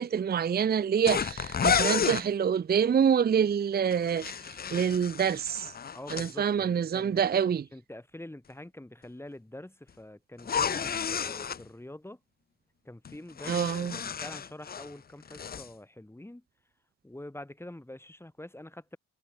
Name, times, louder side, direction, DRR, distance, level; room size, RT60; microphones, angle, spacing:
voice 1, 0.0-5.7 6.1-7.7 13.5-14.0, right 7 dB, 30° right, 0.7 m, -26 dB
sound 1, 1.1-2.3 3.9-6.3 10.4-11.6 13.0-14.9 15.2-15.7, left 7 dB, 30° left, 0.7 m, -31 dB
voice 2, 5.9-7.2 7.7-12.2 12.8-16.4 17.0-19.0, left 1 dB, 10° left, 6.2 m, -46 dB
cardioid pair, 90°, 30 cm